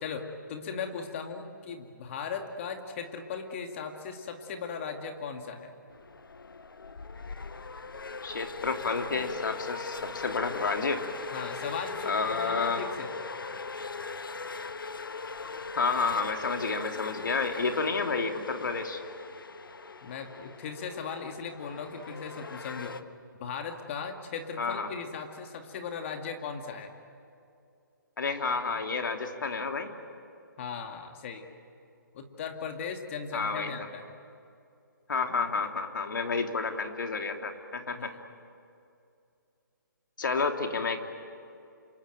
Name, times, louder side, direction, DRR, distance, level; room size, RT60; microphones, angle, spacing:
voice 1, 0.0-5.7 11.3-13.1 20.0-23.0 23.4-26.9 30.6-31.5 32.1-34.0 38.0-38.2, left 6 dB, 35° left, 5 dB, 2.3 m, -38 dB
sound 1, 5.9-23.0, left 4 dB, 85° left, 1.3 m, -40 dB
voice 2, 8.2-11.0 12.0-12.8 15.8-19.0 24.6-24.9 28.2-29.9 33.3-33.7 35.1-38.1 40.2-41.0, left 4 dB, 70° left, 4 dB, 3.0 m, -30 dB
27.5 x 24.0 x 9.2 m, 2.5 s
hypercardioid pair, 155°, 11 cm